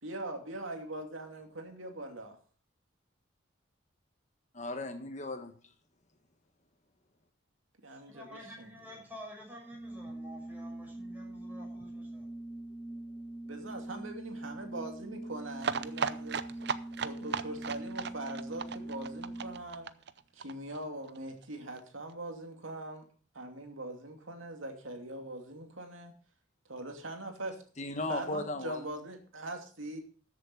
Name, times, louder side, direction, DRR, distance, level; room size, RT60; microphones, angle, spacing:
voice 1, 0.0-2.4 7.8-8.7 13.5-16.4 17.0-19.9 20.3-23.1 23.3-26.1 26.7-27.6 28.1-30.0, right 1 dB, 90° right, 4 dB, 2.5 m, -42 dB
voice 2, 4.5-5.5 27.8-28.9, left 2 dB, 35° left, 7 dB, 1.6 m, -36 dB
voice 3, 7.9-12.3, equal, 10° right, -2 dB, 6.2 m, -50 dB
Organ, 9.6-19.8, right 1 dB, 10° left, 2.1 m, -43 dB
sound 1, 15.6-21.2 21.4-21.5 21.8-21.9 22.1-22.2, right 5 dB, 55° right, 0.6 m, -36 dB
14.0 x 7.6 x 5.3 m, 0.41 s
head